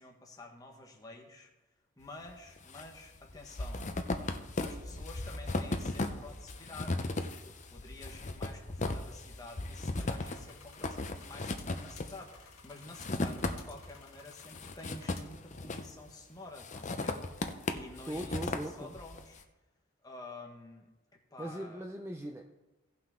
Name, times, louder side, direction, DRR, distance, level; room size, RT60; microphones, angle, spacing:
voice 1, 0.0-1.5 2.0-3.9 4.6-7.0 7.4-19.5 20.0-20.9 21.3-21.9, left 2 dB, 15° left, 0 dB, 1.4 m, -50 dB
sound 1, 2.3-2.9 3.2-13.9 14.3-16.1 16.6-19.2, left 2 dB, 35° left, 0.6 m, -37 dB
sound 2, 10.0-15.2, left 6 dB, 80° left, 1.8 m, -57 dB
voice 2, 18.1-19.0 21.4-22.5, right 1 dB, 10° right, 2 dB, 0.5 m, -40 dB
17.0 x 5.8 x 3.7 m, 1.0 s
head